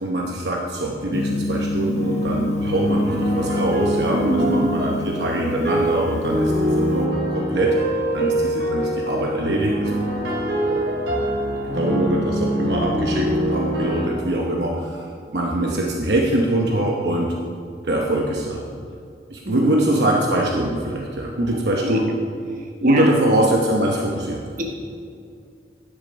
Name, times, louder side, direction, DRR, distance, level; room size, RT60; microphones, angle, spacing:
voice 1, 0.0-7.8 8.1-9.9 10.7-10.9 11.7-15.1 15.3-17.3 17.8-18.6 19.3-22.1 22.8-24.4, right 1 dB, 65° right, 0 dB, 0.9 m, -23 dB
Gong, 1.1-7.0, left 2 dB, 40° left, 0.7 m, -27 dB
sound 1, 2.0-14.1, equal, 85° right, 2.5 m, -24 dB
voice 2, 4.1-4.7 19.4-19.8 21.5-22.1 22.8-23.1 24.6-24.8, right 1 dB, 50° right, 2 dB, 1.3 m, -24 dB
10.5 x 7.2 x 5.2 m, 2.3 s
head